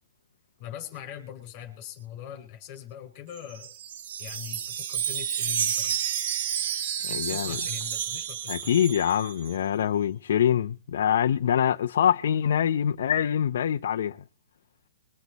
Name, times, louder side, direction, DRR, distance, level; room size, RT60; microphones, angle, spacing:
voice 1, 0.6-3.7 4.2-6.0 7.1-8.9, left 10 dB, 30° left, 5.2 m, -42 dB
Wind chime, 3.4-9.6, right 8 dB, 45° right, 1.0 m, -31 dB
voice 2, 7.0-7.6 8.5-14.2, left 9 dB, 60° left, 0.6 m, -24 dB
23.0 x 8.1 x 4.1 m
hypercardioid pair, 170°, 0 cm